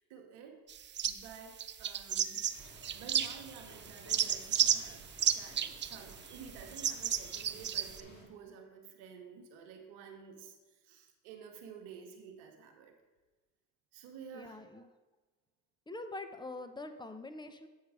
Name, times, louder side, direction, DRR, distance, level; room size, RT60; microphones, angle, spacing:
voice 1, 0.0-2.4 2.9-5.0 5.3-12.9 13.9-14.7, right 6 dB, 85° right, 3 dB, 1.1 m, -51 dB
sound 1, 0.7-1.3 1.6-3.6 3.9-8.0, right 9 dB, 30° right, 0.4 m, -33 dB
sound 2, 2.5-8.2, left 1 dB, 45° left, 2.2 m, -56 dB
voice 2, 14.3-14.9 15.9-17.7, left 2 dB, 10° left, 8 dB, 0.8 m, -44 dB
8.1 x 4.8 x 4.9 m, 1.2 s
supercardioid pair, 60°, 39 cm